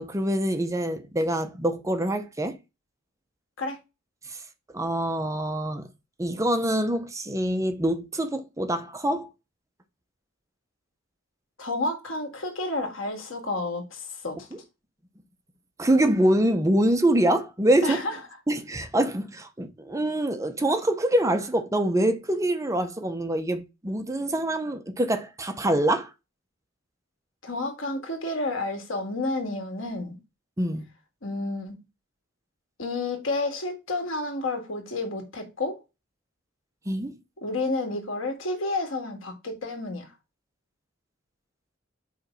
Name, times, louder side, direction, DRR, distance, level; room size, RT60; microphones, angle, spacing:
voice 1, 0.0-2.6 4.3-4.4 4.7-5.9 6.2-9.3 15.8-18.0 18.5-26.1 30.6-30.8 36.9-37.2, right 1 dB, 15° right, 0.7 m, -25 dB
voice 2, 11.6-14.5 17.8-18.2 27.4-30.2 31.2-31.8 32.8-35.8 37.4-40.1, left 2 dB, 85° left, 1.9 m, -30 dB
5.2 x 3.9 x 5.3 m
head